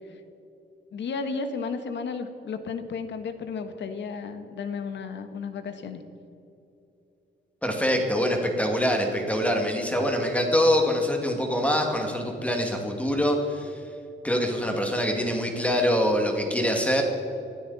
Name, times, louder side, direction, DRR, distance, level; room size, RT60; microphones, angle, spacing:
voice 1, 0.9-6.0, left 5 dB, 70° left, 9 dB, 1.4 m, -33 dB
voice 2, 7.6-13.7 14.2-17.0, equal, 5° left, 2 dB, 2.2 m, -24 dB
20.5 x 13.0 x 4.2 m, 2.8 s
cardioid pair, 125°, 19 cm